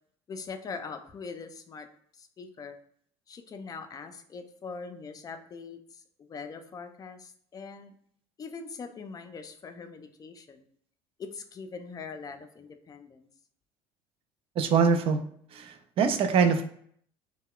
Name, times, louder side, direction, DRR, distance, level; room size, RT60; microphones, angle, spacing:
voice 1, 0.3-1.9 2.1-2.8 3.3-8.0 8.4-10.7 11.2-13.3, left 5 dB, 30° left, 7 dB, 0.4 m, -42 dB
voice 2, 14.6-15.2 15.5-16.7, right 5 dB, 45° right, 8 dB, 0.4 m, -24 dB
2.2 x 2.2 x 3.6 m, 0.62 s
supercardioid pair, 95°, 13 cm